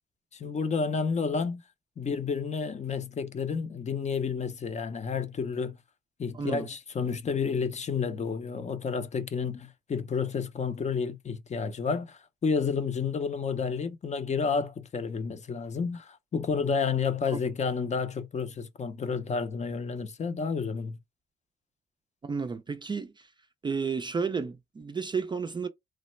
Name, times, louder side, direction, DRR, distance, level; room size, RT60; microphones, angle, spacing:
voice 1, 0.3-1.6 2.0-5.8 6.2-21.0, left 5 dB, 35° left, 0.6 m, -30 dB
voice 2, 6.3-6.7 17.3-17.4 22.2-23.3 23.6-25.7, right 5 dB, 25° right, 0.4 m, -32 dB
3.1 x 2.0 x 3.1 m
cardioid pair, 90°, 20 cm